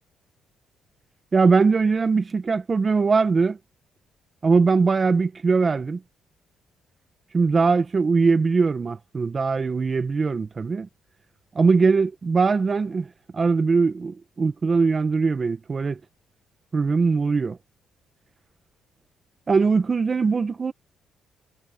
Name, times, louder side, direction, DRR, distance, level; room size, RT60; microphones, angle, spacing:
voice 1, 1.3-3.6 4.4-6.0 7.3-10.9 11.6-16.0 16.7-17.6 19.5-20.7, right 4 dB, 35° right, 1.7 m, -21 dB
cardioid pair, 90°, 0 cm